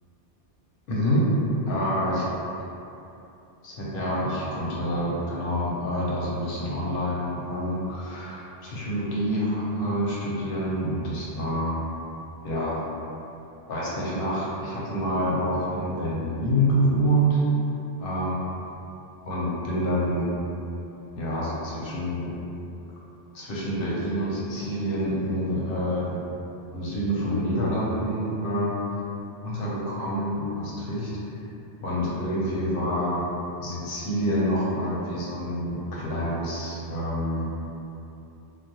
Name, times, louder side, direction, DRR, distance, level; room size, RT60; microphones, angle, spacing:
voice 1, 0.9-1.3 1.7-2.2 3.6-11.8 12.4-12.8 13.7-17.4 18.0-18.4 19.3-20.3 21.2-22.3 23.3-26.2 26.7-28.7 29.4-31.1 31.8-33.3 33.6-37.5, equal, 65° left, -6 dB, 0.8 m, -27 dB
2.2 x 2.2 x 2.8 m, 2.8 s
omnidirectional pair, 1.1 m